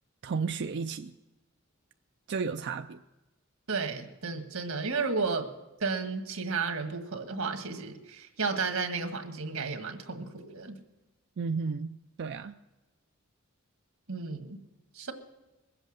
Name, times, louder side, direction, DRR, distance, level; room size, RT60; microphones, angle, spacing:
voice 1, 0.2-1.1 2.3-3.0 11.4-12.5, right 5 dB, 55° right, 7 dB, 0.4 m, -33 dB
voice 2, 3.7-5.5 5.8-10.8 14.1-14.6 14.9-15.1, right 4 dB, 90° right, 6 dB, 1.6 m, -33 dB
21.0 x 8.0 x 6.4 m, 1.1 s
head